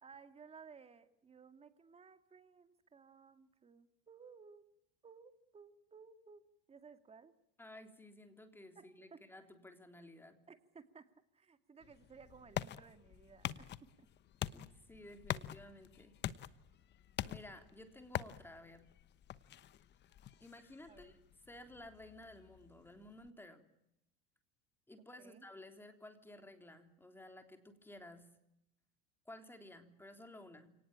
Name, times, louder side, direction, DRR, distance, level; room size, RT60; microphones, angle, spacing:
voice 1, 0.0-4.7 5.0-7.3 8.8-9.2 10.5-14.1 20.9-21.2 25.0-25.4, right 5 dB, 20° right, 9 dB, 2.3 m, -59 dB
voice 2, 7.6-10.4 14.5-16.2 17.2-18.9 20.4-21.2 21.5-23.7 24.9-28.3 29.3-30.8, left 1 dB, 5° left, 7 dB, 3.5 m, -55 dB
sound 1, 11.8-23.3, left 11 dB, 35° left, 1.1 m, -46 dB
29.0 x 19.0 x 9.0 m, 0.82 s
supercardioid pair, 130°, 31 cm